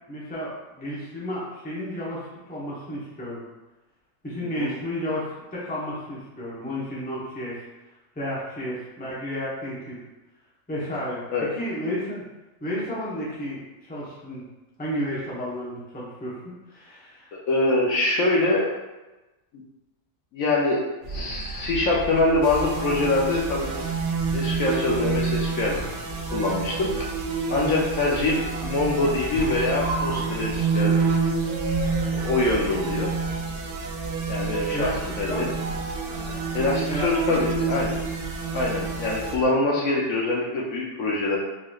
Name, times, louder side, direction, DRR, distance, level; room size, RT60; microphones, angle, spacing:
voice 1, 0.1-3.4 4.2-7.6 8.1-10.0 10.7-12.2 12.6-14.4 14.8-17.3 34.7-35.0 35.3-35.5 36.9-37.1, equal, 10° left, -7 dB, 0.7 m, -32 dB
voice 2, 17.3-18.7 20.3-20.8 21.1-23.9 24.3-25.8 26.3-26.9 27.5-31.0 32.1-33.1 34.3-34.9 35.2-35.5 36.5-37.9 38.5-41.4, left 2 dB, 65° left, -3 dB, 1.0 m, -24 dB
sound 1, 21.0-39.4, right 1 dB, 70° right, 1.6 m, -35 dB
sound 2, 22.4-39.4, right 5 dB, 85° right, 0.5 m, -29 dB
4.6 x 3.0 x 2.3 m, 1.1 s
omnidirectional pair, 1.6 m